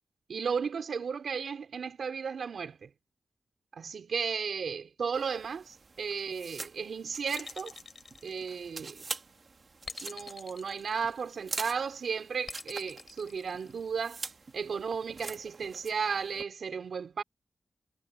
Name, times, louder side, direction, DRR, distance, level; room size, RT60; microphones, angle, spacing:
voice 1, 0.3-2.9 3.7-7.7 8.2-9.1 10.0-14.2 14.5-17.2, right 6 dB, 65° right, 3.7 m, -34 dB
sound 1, 5.1-16.4, right 4 dB, 40° right, 1.6 m, -45 dB
sound 2, 7.4-9.0 9.8-11.5 12.5-14.1, left 4 dB, 40° left, 6.5 m, -46 dB
wide cardioid pair, 180°, 0 cm